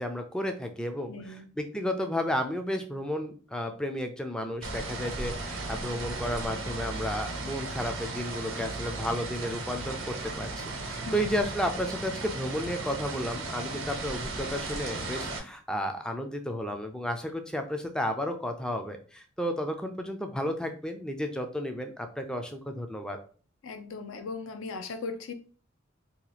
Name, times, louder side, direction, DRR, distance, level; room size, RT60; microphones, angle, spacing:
voice 1, 0.0-23.2, equal, 5° left, 0.3 m, -33 dB
voice 2, 1.1-1.5 11.1-11.4 23.6-25.3, left 3 dB, 75° left, 0.5 m, -38 dB
sound 1, 4.6-15.4, right 2 dB, 85° right, 0.8 m, -36 dB
2.8 x 2.3 x 4.0 m
head